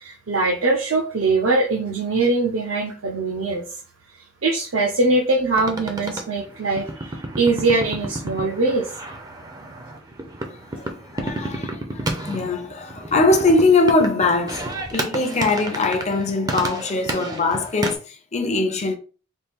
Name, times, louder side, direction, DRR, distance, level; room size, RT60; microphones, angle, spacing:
voice 1, 0.0-3.6 4.4-7.1 7.4-8.9, right 3 dB, 70° right, 0.6 m, -22 dB
sound 1, 5.6-18.0, right 1 dB, 20° right, 0.5 m, -31 dB
voice 2, 10.4-19.0, left 3 dB, 30° left, 0.6 m, -22 dB
4.2 x 2.3 x 3.5 m
head